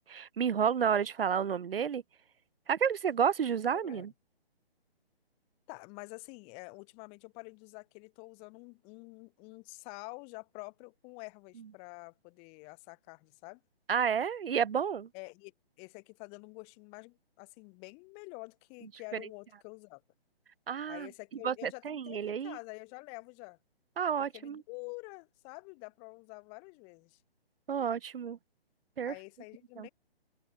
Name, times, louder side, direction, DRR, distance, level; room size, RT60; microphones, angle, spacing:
voice 1, 0.1-2.0 2.7-4.1 13.9-15.1 19.1-19.2 20.7-21.1 21.4-22.6 24.0-24.6 27.7-28.4 29.0-29.1 29.8-29.9, right 7 dB, 65° right, 1.0 m, -30 dB
voice 2, 3.7-4.1 5.7-13.6 15.1-15.5 15.8-20.0 20.9-23.6 24.3-27.2 29.0-29.9, left 34 dB, 20° left, 2.1 m, -48 dB
open air
hypercardioid pair, 150°, 31 cm